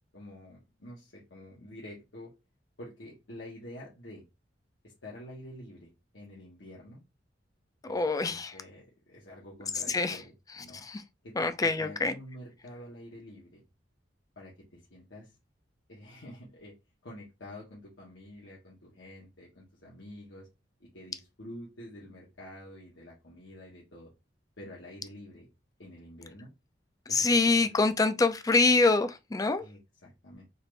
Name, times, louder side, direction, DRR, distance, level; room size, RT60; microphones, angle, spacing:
voice 1, 0.1-2.3 2.8-4.2 4.8-7.0 7.9-10.8 11.2-13.6 14.4-15.3 15.9-16.7 17.0-20.5 20.8-24.1 24.6-25.5 25.8-26.5 27.1-27.9 29.6-30.4, left 1 dB, 75° left, 1.2 m, -48 dB
voice 2, 7.9-8.5 9.9-10.2 10.8-11.0 11.4-12.1 27.1-29.6, left 3 dB, 20° left, 0.4 m, -25 dB
4.1 x 2.5 x 3.2 m
head